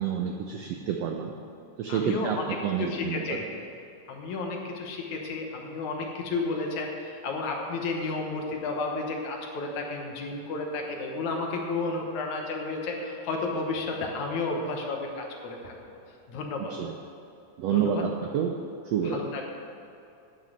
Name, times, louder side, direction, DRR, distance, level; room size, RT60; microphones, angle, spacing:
voice 1, 0.0-1.3 1.8-2.4 2.6-3.2 16.7-16.9 17.6-18.5 18.8-19.2, right 8 dB, 80° right, 3 dB, 1.4 m, -28 dB
voice 2, 1.9-2.5 2.8-3.5 4.1-16.7 17.7-18.0 19.0-19.4, left 3 dB, 70° left, 1 dB, 2.4 m, -32 dB
11.0 x 6.1 x 7.7 m, 2.6 s
omnidirectional pair, 3.6 m